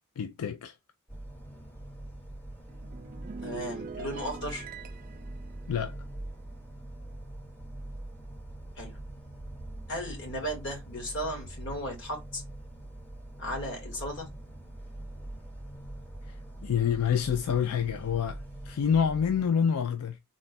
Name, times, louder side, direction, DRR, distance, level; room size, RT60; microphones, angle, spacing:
voice 1, 0.2-0.7 5.7-6.0 16.3-16.4 16.6-20.2, left 7 dB, 90° left, 0.4 m, -27 dB
sound 1, 1.1-19.5, right 1 dB, 10° left, 0.7 m, -43 dB
sound 2, 2.7-7.3 7.6-7.9, right 5 dB, 40° right, 0.4 m, -44 dB
voice 2, 3.4-4.7 8.8-9.0 9.9-12.4 13.4-14.3, equal, 55° left, 1.7 m, -35 dB
3.8 x 2.3 x 4.0 m
head